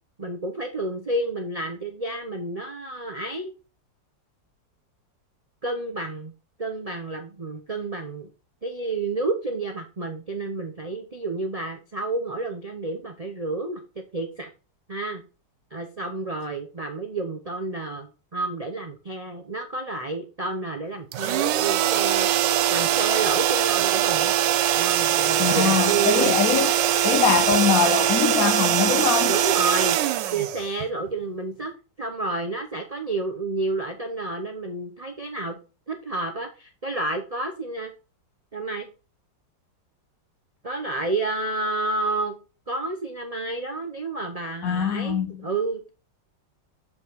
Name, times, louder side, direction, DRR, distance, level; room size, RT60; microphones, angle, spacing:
voice 1, 0.2-3.5 5.6-6.3 6.6-8.3 8.6-13.8 14.1-14.5 14.9-15.2 15.7-24.3 24.8-26.4 29.3-30.0 30.3-35.6 35.9-37.9 38.5-38.9 40.6-42.4 42.7-45.9, right 2 dB, 55° right, 0.4 m, -30 dB
sound 1, 21.1-31.1, right 11 dB, 80° right, 1.3 m, -22 dB
voice 2, 25.4-26.7 27.0-29.3 44.6-45.5, left 7 dB, 65° left, 1.0 m, -23 dB
7.0 x 5.4 x 4.6 m
omnidirectional pair, 1.9 m